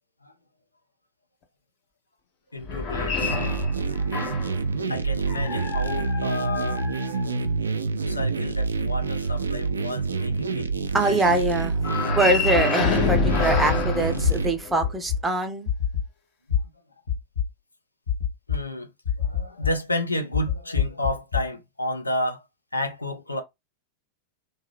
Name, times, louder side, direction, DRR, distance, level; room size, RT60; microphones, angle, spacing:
voice 1, 2.5-3.4 4.0-6.8 8.0-10.7 11.0-11.2 18.5-18.9 19.2-22.4 22.7-23.4, left 1 dB, 80° left, 0.6 m, -31 dB
sound 1, 2.6-4.6 5.3-7.7 11.8-14.9, left 5 dB, 35° left, 0.7 m, -28 dB
sound 2, 3.2-14.5, right 4 dB, 75° right, 0.3 m, -27 dB
voice 2, 10.9-15.7, right 2 dB, 10° right, 0.6 m, -24 dB
sound 3, 12.5-12.9 13.5-13.8 14.2-14.3 14.8-15.2 15.7-16.0 16.5-16.6 17.1-17.5 18.1-18.6 19.1-19.7 20.3-21.4, left 9 dB, 65° left, 1.3 m, -24 dB
2.7 x 2.4 x 3.1 m
figure-of-eight pair, 90°, 0 cm